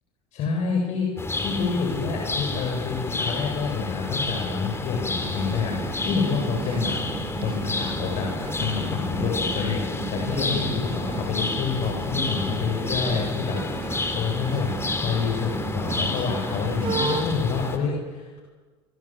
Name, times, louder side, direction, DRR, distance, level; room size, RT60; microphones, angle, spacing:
voice 1, 0.3-6.9 7.4-9.8 10.1-18.4, left 5 dB, 55° left, 0 dB, 7.4 m, -28 dB
sound 1, 1.2-17.8, left 3 dB, 15° left, 4.1 m, -30 dB
sound 2, 5.2-17.2, right 6 dB, 35° right, 4.2 m, -35 dB
29.5 x 25.0 x 7.6 m, 1.3 s
hypercardioid pair, 75°, 15 cm